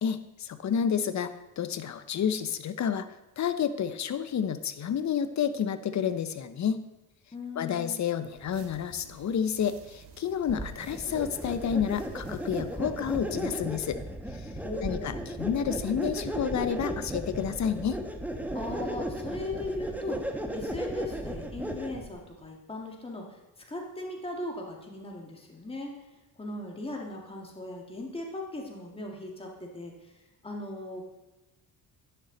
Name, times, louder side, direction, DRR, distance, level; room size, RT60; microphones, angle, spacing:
voice 1, 0.0-3.1 3.4-6.8 7.6-14.0 14.3-14.5 14.8-18.0, left 8 dB, 45° left, 11 dB, 0.8 m, -30 dB
voice 2, 7.3-8.0 14.6-15.2 18.5-20.3 20.5-23.4 23.7-26.0 26.4-30.1 30.4-31.1, left 2 dB, 15° left, 0 dB, 1.9 m, -38 dB
sound 1, 8.1-13.4, right 6 dB, 75° right, 1.5 m, -53 dB
sound 2, 10.5-22.1, right 1 dB, 5° right, 1.1 m, -35 dB
10.0 x 6.6 x 4.0 m, 1.0 s
supercardioid pair, 75°, 40 cm